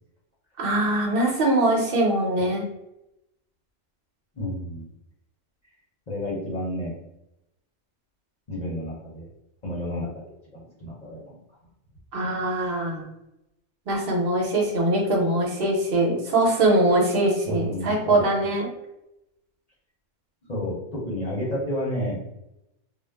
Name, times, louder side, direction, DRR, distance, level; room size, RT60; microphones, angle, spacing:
voice 1, 0.6-2.7 12.1-13.0 13.9-18.7, right 1 dB, 55° right, -1 dB, 0.9 m, -22 dB
voice 2, 4.3-4.9 6.1-6.9 8.5-9.3 9.6-10.2 10.5-11.4 17.4-18.5 20.5-22.2, left 1 dB, 40° left, -6 dB, 0.7 m, -31 dB
2.3 x 2.0 x 3.3 m, 0.89 s
omnidirectional pair, 1.2 m